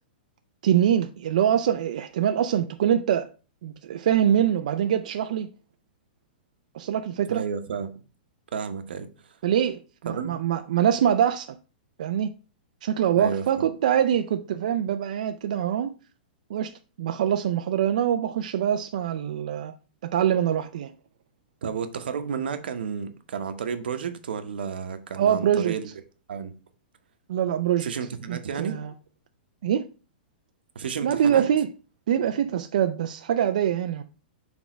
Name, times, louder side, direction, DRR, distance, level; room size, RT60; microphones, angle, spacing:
voice 1, 0.6-3.3 3.6-5.5 6.7-7.4 9.4-11.6 12.0-12.3 12.8-15.9 16.5-19.7 20.0-20.9 25.2-25.7 27.3-27.9 28.3-28.9 29.6-29.9 31.0-31.7 32.1-34.0, right 9 dB, 50° right, 0.4 m, -24 dB
voice 2, 7.3-7.9 8.5-9.1 10.1-10.4 13.2-13.7 21.6-25.9 26.3-26.5 27.8-28.8 30.7-31.4, right 6 dB, 85° right, 1.0 m, -31 dB
6.1 x 3.5 x 5.0 m
hypercardioid pair, 180°, 5 cm